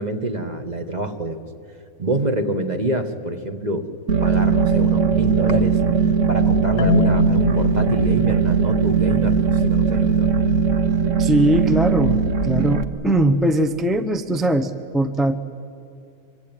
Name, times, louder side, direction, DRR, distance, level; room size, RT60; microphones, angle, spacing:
voice 1, 0.0-1.4 2.0-3.9 4.2-5.8 6.3-10.4, right 2 dB, 30° right, 7 dB, 1.5 m, -26 dB
sound 1, 4.1-12.8, right 6 dB, 60° right, 1.4 m, -19 dB
Marimba xylophone, 6.8-9.8, left 5 dB, 65° left, 1.1 m, -25 dB
voice 2, 11.2-15.4, right 1 dB, ahead, 8 dB, 0.7 m, -20 dB
25.5 x 24.0 x 9.1 m, 2.5 s
omnidirectional pair, 1.5 m